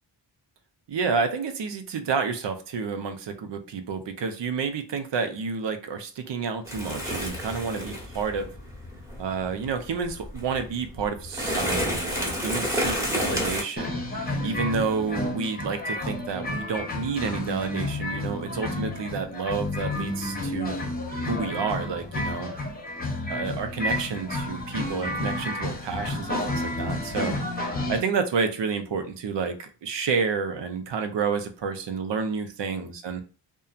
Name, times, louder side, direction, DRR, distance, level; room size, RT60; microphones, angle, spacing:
voice 1, 0.9-8.5 9.2-14.0 14.4-20.8 21.3-22.5 23.3-27.4 27.9-33.2, right 5 dB, 75° right, 7 dB, 0.6 m, -30 dB
sound 1, 6.6-13.6, equal, 5° right, 1.0 m, -30 dB
sound 2, 13.8-28.0, left 1 dB, 20° left, 0.8 m, -31 dB
2.7 x 2.2 x 2.4 m, 0.37 s
wide cardioid pair, 80°, 44 cm